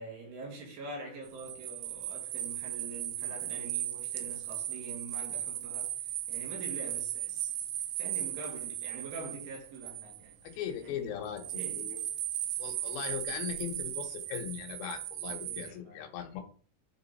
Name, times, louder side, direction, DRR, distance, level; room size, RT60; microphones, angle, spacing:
voice 1, 0.0-7.6 8.0-10.4 10.8-11.2 11.5-11.9 15.3-16.0, right 3 dB, 70° right, 3.9 m, -45 dB
sound 1, 1.2-10.5 11.4-15.7, right 12 dB, 90° right, 3.1 m, -37 dB
voice 2, 10.4-11.4 11.7-12.0 12.6-16.4, left 9 dB, 80° left, 3.2 m, -39 dB
10.0 x 3.7 x 4.1 m
omnidirectional pair, 5.1 m